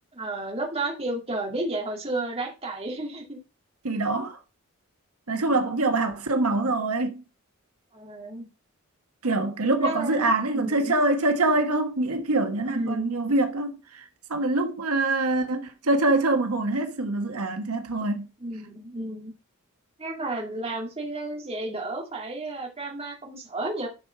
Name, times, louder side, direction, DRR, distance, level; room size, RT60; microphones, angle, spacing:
voice 1, 0.1-3.4 7.9-8.5 9.8-10.9 12.7-13.2 18.4-19.3 20.0-23.9, right 2 dB, 25° right, 2.2 m, -32 dB
voice 2, 3.8-4.4 5.3-7.2 9.2-14.0 14.3-18.3, right 2 dB, 85° right, 1.3 m, -24 dB
11.0 x 4.8 x 5.7 m
head